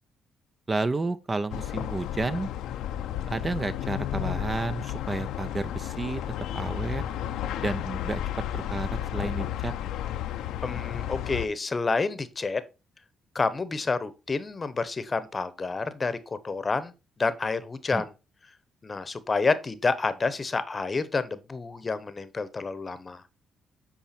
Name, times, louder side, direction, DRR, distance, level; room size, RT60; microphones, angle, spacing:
voice 1, 0.7-2.5 3.3-6.2 6.5-7.0 7.6-8.2 8.5-9.7 17.9-18.0, right 3 dB, 25° right, 0.6 m, -31 dB
sound 1, 1.5-11.5, left 11 dB, 90° left, 0.7 m, -32 dB
voice 2, 10.6-12.6 13.3-16.9 17.2-18.1 18.8-23.2, left 4 dB, 30° left, 0.9 m, -29 dB
8.9 x 4.5 x 4.3 m
cardioid pair, 90°, 0 cm